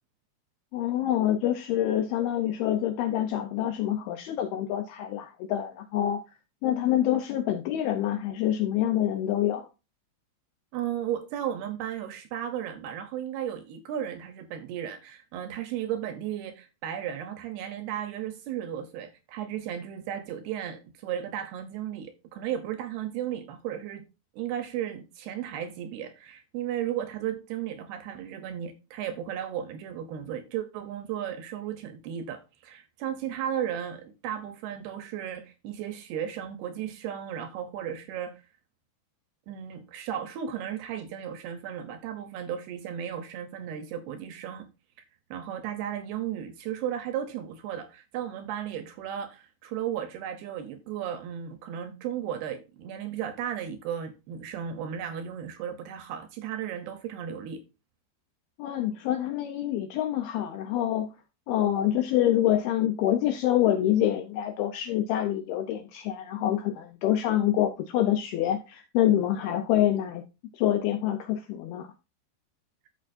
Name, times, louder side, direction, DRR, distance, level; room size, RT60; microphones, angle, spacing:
voice 1, 0.7-6.2 6.6-9.7 58.6-61.1 61.5-70.2 70.5-71.9, left 12 dB, 80° left, 2.2 m, -26 dB
voice 2, 10.7-24.0 24.3-38.4 39.5-44.7 45.3-57.6, right 10 dB, 75° right, 2.5 m, -35 dB
13.5 x 5.8 x 2.5 m
omnidirectional pair, 5.2 m